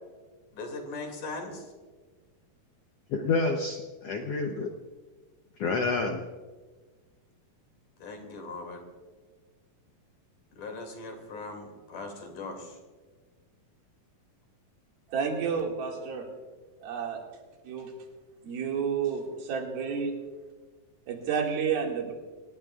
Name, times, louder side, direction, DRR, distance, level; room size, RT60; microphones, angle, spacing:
voice 1, 0.5-1.6 8.0-8.8 10.6-12.8, left 3 dB, 60° left, 3 dB, 3.8 m, -39 dB
voice 2, 3.1-4.7 5.6-6.2, left 3 dB, 90° left, 3 dB, 1.3 m, -28 dB
voice 3, 15.1-16.3 16.8-17.3 17.6-17.9 18.4-20.2 21.1-22.1, right 6 dB, 80° right, 0 dB, 4.0 m, -30 dB
27.5 x 18.5 x 2.4 m, 1.4 s
omnidirectional pair, 4.2 m